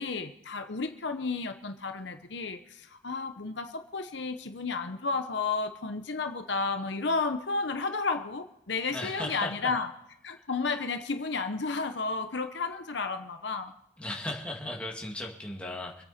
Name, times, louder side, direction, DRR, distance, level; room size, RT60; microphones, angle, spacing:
voice 1, 0.0-9.9 10.2-13.7, left 4 dB, 60° left, 7 dB, 0.9 m, -32 dB
voice 2, 8.9-9.5 14.0-16.0, left 1 dB, 5° left, -1 dB, 2.2 m, -36 dB
26.5 x 8.8 x 4.3 m, 0.86 s
head